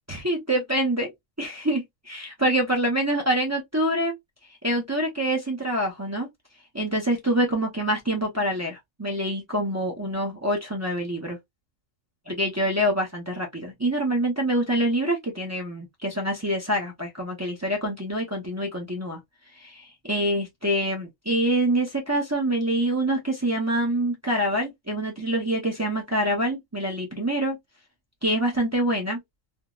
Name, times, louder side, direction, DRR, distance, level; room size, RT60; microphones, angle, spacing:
voice 1, 0.1-1.1 1.4-4.1 4.6-6.3 6.7-11.4 12.3-19.2 19.6-27.6 28.2-29.2, right 1 dB, 25° right, 0.3 m, -26 dB
3.4 x 2.0 x 2.3 m
omnidirectional pair, 1.4 m